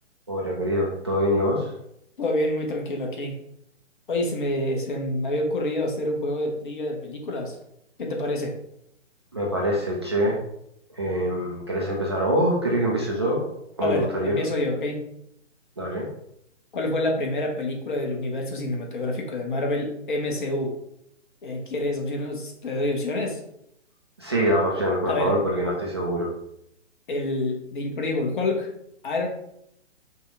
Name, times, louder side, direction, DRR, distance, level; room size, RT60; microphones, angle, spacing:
voice 1, 0.3-1.7 9.3-10.4 10.9-13.4 13.8-14.4 15.8-16.1 24.2-26.3, equal, 25° right, -4 dB, 0.4 m, -24 dB
voice 2, 2.2-3.4 4.1-7.6 8.0-8.6 13.8-15.0 16.7-20.7 21.4-23.4 25.1-25.4 27.1-28.7 29.0-29.3, left 1 dB, 40° left, 1 dB, 1.0 m, -27 dB
5.3 x 2.2 x 3.8 m, 0.76 s
figure-of-eight pair, 130°, 37 cm